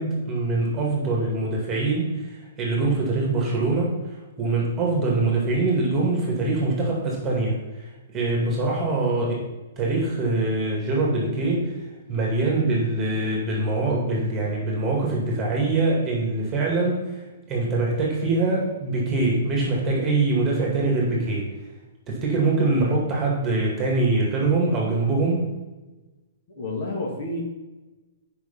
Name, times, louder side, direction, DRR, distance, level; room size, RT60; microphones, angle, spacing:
voice 1, 0.0-4.0 4.4-7.6 8.1-9.4 9.8-11.7 12.1-21.5 22.1-25.5, right 2 dB, 15° right, -2 dB, 2.2 m, -23 dB
voice 2, 26.5-27.4, left 2 dB, 45° left, -1 dB, 2.3 m, -30 dB
8.1 x 5.5 x 5.6 m, 1.1 s
hypercardioid pair, 165°, 0 cm